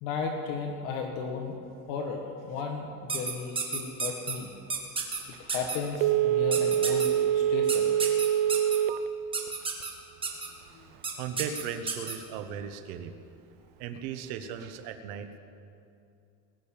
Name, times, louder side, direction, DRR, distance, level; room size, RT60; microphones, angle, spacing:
voice 1, 0.0-1.6 1.9-4.5 5.4-7.9 10.8-10.9, left 5 dB, 60° left, 3 dB, 1.6 m, -35 dB
sound 1, 3.1-4.3 4.7-5.2 5.5-5.8 6.5-7.1 7.7-8.8 9.3-9.9 10.2-10.5 11.0-11.1 11.4-12.1, right 5 dB, 10° right, 1.5 m, -31 dB
Telephone, 6.0-9.1 9.5-9.6, right 10 dB, 50° right, 0.6 m, -25 dB
voice 2, 11.2-13.1 13.8-15.4, right 8 dB, 80° right, 8 dB, 1.4 m, -37 dB
20.5 x 6.8 x 9.0 m, 2.6 s
cardioid pair, 165°, 43 cm